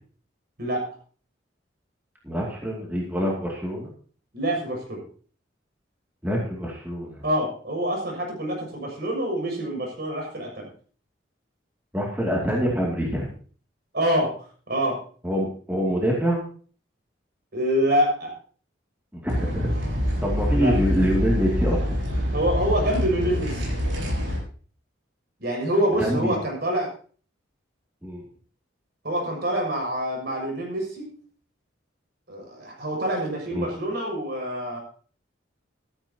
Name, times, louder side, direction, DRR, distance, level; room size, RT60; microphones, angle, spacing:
voice 1, 2.2-3.9 6.2-7.2 11.9-13.3 15.2-16.4 19.2-19.5 20.2-21.8 26.0-26.3 28.0-28.2 33.5-33.7, equal, 10° right, -4 dB, 2.5 m, -25 dB
voice 2, 4.3-5.0 7.2-10.7 13.9-14.4 14.7-15.0 17.5-18.3 20.5-20.7 22.3-23.7 25.4-26.9 29.0-31.1 32.3-34.8, right 1 dB, 55° right, -1 dB, 6.4 m, -26 dB
sound 1, 19.3-24.4, equal, 75° right, 7.2 m, -25 dB
14.0 x 13.5 x 2.9 m, 0.43 s
head